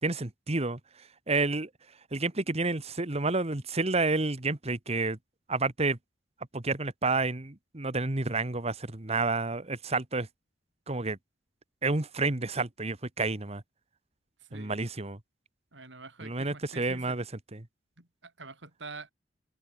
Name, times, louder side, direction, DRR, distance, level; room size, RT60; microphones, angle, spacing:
voice 1, 0.0-1.7 2.1-5.2 5.5-6.0 6.5-10.3 10.9-11.2 11.8-13.6 14.5-15.2 16.2-17.2 17.5-17.7, right 3 dB, 35° right, 1.5 m, -30 dB
voice 2, 14.5-14.9 15.7-17.2 18.0-19.1, right 3 dB, 75° right, 4.9 m, -46 dB
open air
head